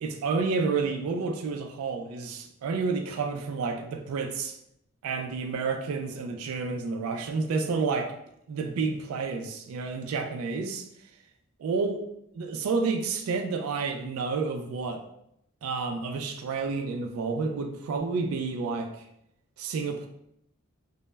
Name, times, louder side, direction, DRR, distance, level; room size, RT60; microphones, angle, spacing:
voice 1, 0.0-4.5 5.0-8.1 8.5-10.8 11.6-12.0 12.3-15.0 15.6-19.1 19.6-20.1, right 4 dB, 75° right, 5 dB, 0.3 m, -30 dB
2.1 x 2.0 x 3.2 m, 0.76 s
head